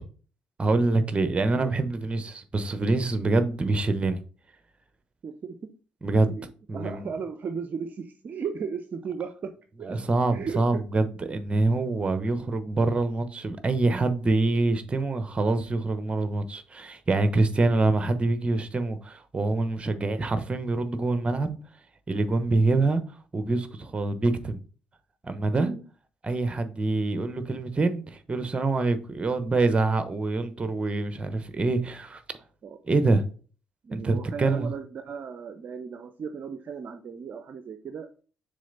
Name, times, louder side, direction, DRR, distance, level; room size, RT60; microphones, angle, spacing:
voice 1, 0.6-4.2 6.0-6.3 6.7-7.0 9.8-21.6 22.1-23.0 23.3-24.6 25.2-25.7 26.2-32.2 32.8-33.2 33.9-34.7, right 2 dB, 30° right, 1.0 m, -25 dB
voice 2, 5.2-5.7 6.3-9.5 9.8-10.0 10.3-10.8 12.3-12.5 25.6-25.8 32.6-32.8 33.8-38.1, right 6 dB, 50° right, 0.6 m, -36 dB
6.3 x 4.1 x 3.9 m
hypercardioid pair, 50°, 4 cm